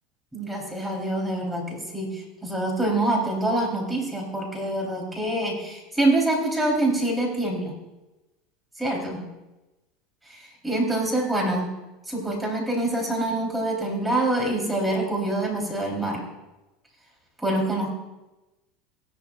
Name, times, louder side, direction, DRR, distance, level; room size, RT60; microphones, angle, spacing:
voice 1, 0.3-7.7 8.8-9.2 10.3-11.7 12.1-16.2 17.4-17.9, right 1 dB, 10° right, -1 dB, 3.6 m, -25 dB
16.5 x 11.5 x 2.4 m, 1.0 s
hypercardioid pair, 95°, 0 cm